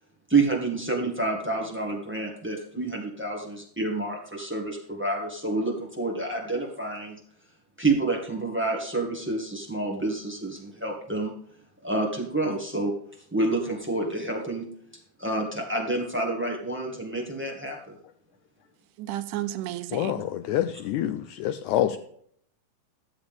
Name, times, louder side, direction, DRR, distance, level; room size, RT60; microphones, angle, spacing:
voice 1, 0.3-7.2 7.8-11.3 11.8-12.9 13.3-14.7 15.2-18.0, right 2 dB, 10° right, -1 dB, 0.6 m, -28 dB
voice 2, 19.0-20.2, right 14 dB, 80° right, 11 dB, 2.1 m, -32 dB
voice 3, 19.9-22.0, left 12 dB, 80° left, 11 dB, 1.8 m, -27 dB
12.5 x 7.9 x 3.6 m, 0.63 s
omnidirectional pair, 3.8 m